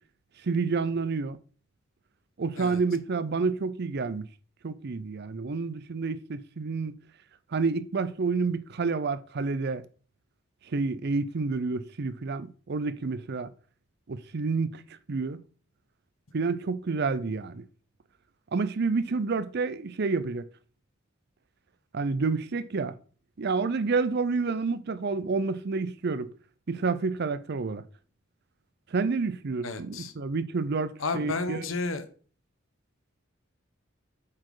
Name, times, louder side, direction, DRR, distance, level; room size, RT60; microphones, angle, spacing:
voice 1, 0.4-1.4 2.4-4.3 4.6-6.9 7.5-9.8 10.7-13.5 14.1-14.8 15.1-15.4 16.3-17.6 18.5-20.5 21.9-22.9 23.4-26.3 26.7-27.8 28.9-31.6, right 4 dB, 55° right, 0.6 m, -29 dB
voice 2, 29.6-30.1 31.0-32.0, left 3 dB, 90° left, 1.1 m, -32 dB
8.5 x 4.2 x 4.8 m
head